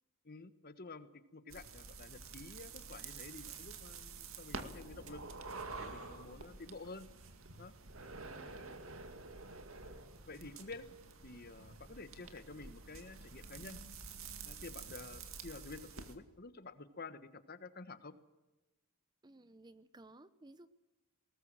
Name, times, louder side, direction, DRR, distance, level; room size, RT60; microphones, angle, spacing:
voice 1, 0.2-5.2 5.8-7.1 7.6-7.7 10.3-10.9 11.2-13.8 14.4-18.1, left 3 dB, 45° left, 12 dB, 1.4 m, -50 dB
sound 1, 1.5-16.2, right 4 dB, 75° right, 2.2 m, -49 dB
voice 2, 8.2-8.8 19.2-20.7, right 2 dB, 20° right, 14 dB, 0.7 m, -58 dB
21.0 x 19.0 x 7.7 m, 1.1 s
head